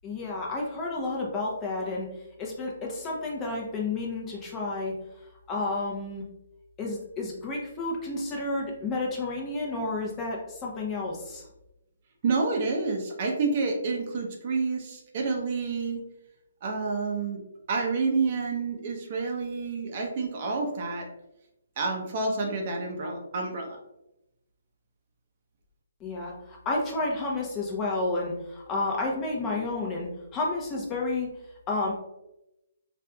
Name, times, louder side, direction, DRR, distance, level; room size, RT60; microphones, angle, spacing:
voice 1, 0.0-2.1 2.4-4.9 5.5-6.2 6.8-11.4 26.0-31.3 31.7-31.9, left 2 dB, 20° left, -2 dB, 0.7 m, -31 dB
voice 2, 12.2-16.0 16.6-17.4 17.7-21.1 21.8-23.8, right 4 dB, 45° right, 1 dB, 0.7 m, -29 dB
4.4 x 2.5 x 2.2 m, 0.90 s
hypercardioid pair, 140°, 0 cm